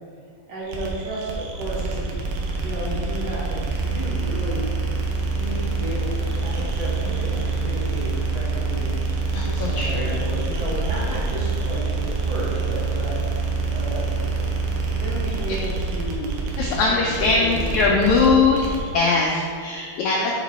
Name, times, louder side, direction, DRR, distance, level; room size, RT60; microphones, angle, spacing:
voice 1, 0.5-2.1 2.6-4.7 5.3-8.9 9.4-13.1 13.7-18.5, equal, 55° right, -9 dB, 2.1 m, -33 dB
sound 1, 0.7-18.9, right 4 dB, 75° right, 2.3 m, -26 dB
voice 2, 9.3-10.2 16.6-18.7 18.9-20.4, left 4 dB, 85° left, -2 dB, 1.7 m, -21 dB
8.8 x 3.0 x 4.1 m, 2.3 s
omnidirectional pair, 4.0 m